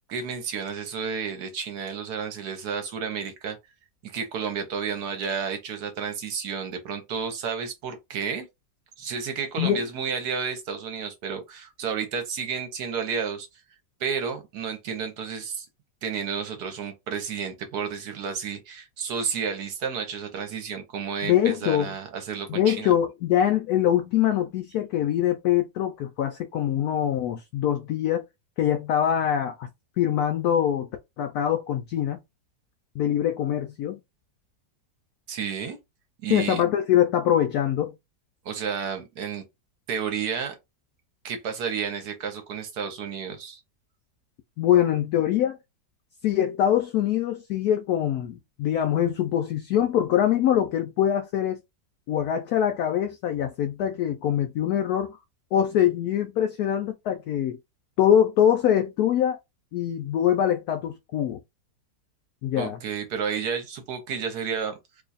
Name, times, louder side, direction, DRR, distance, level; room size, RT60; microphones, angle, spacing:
voice 1, 0.1-3.6 4.0-8.5 9.0-13.5 14.0-15.7 16.0-22.9 35.3-35.8 36.2-36.6 38.4-39.4 39.9-40.5 41.2-43.6 62.6-65.0, right 6 dB, 70° right, 1.3 m, -31 dB
voice 2, 21.2-21.9 22.5-28.2 28.6-29.7 30.0-30.9 31.2-32.2 33.0-34.0 36.3-37.9 44.6-45.6 46.2-51.6 52.1-55.2 55.5-57.6 58.0-59.4 59.7-61.4 62.4-62.8, left 10 dB, 70° left, 1.0 m, -23 dB
3.0 x 2.3 x 3.9 m
omnidirectional pair, 1.9 m